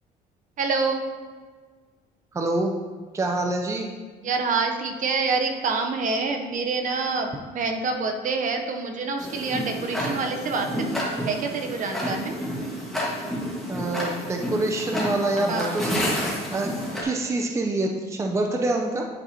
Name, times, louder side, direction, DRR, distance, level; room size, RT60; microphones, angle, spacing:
voice 1, 0.6-1.1 4.2-12.3 15.5-15.8, right 4 dB, 50° right, 4 dB, 0.8 m, -27 dB
voice 2, 2.3-2.7 3.1-3.9 13.7-16.1 16.5-16.7 17.0-19.0, right 2 dB, 15° right, 2 dB, 0.6 m, -26 dB
Tick-tock, 9.2-17.0, equal, ahead, 1.6 m, -30 dB
9.9 x 4.1 x 2.8 m, 1.5 s
cardioid pair, 110°, 17 cm